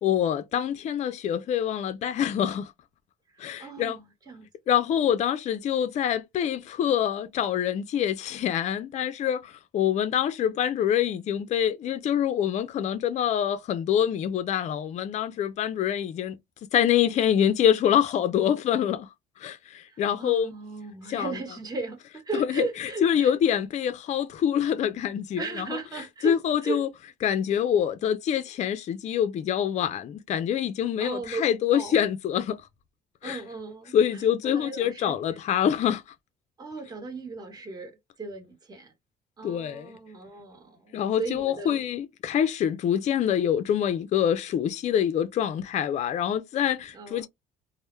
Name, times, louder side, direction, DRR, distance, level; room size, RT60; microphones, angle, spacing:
voice 1, 0.0-2.7 3.4-4.0 4.7-16.4 16.7-19.1 19.4-20.5 21.1-21.3 22.3-25.7 26.2-26.9 27.2-32.6 33.2-33.4 33.9-36.0 39.4-40.0 40.9-47.3, left 9 dB, 45° left, 0.4 m, -25 dB
voice 2, 3.3-4.5 19.8-23.3 25.4-26.8 31.0-31.4 31.7-32.0 33.2-35.4 36.6-38.9 39.4-41.8 46.9-47.3, right 3 dB, 25° right, 1.0 m, -37 dB
2.1 x 2.0 x 3.0 m
cardioid pair, 110°, 17 cm